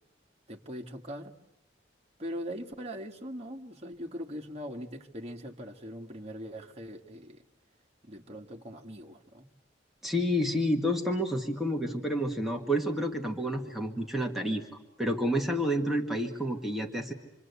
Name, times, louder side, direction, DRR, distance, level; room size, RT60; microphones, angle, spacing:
voice 1, 0.5-1.3 2.2-7.4 8.0-9.5, equal, 35° right, 1 dB, 1.8 m, -41 dB
voice 2, 10.0-14.7 15.0-17.1, equal, ahead, 0 dB, 1.9 m, -29 dB
27.5 x 24.5 x 8.3 m, 0.92 s
head